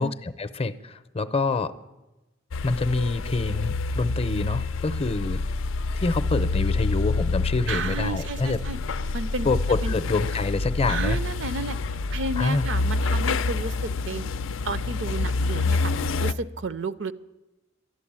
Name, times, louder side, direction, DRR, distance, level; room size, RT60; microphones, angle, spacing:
voice 1, 0.0-1.7 2.6-5.4 5.9-8.6 9.4-11.2 12.4-12.6, left 3 dB, 30° left, 13 dB, 0.6 m, -26 dB
sound 1, 2.5-16.3, left 3 dB, 85° left, 0.4 m, -27 dB
voice 2, 7.7-8.8 9.1-9.5 9.8-10.0 10.9-14.3 14.6-17.1, right 3 dB, 70° right, 15 dB, 0.6 m, -32 dB
12.0 x 11.5 x 8.7 m, 1.0 s
head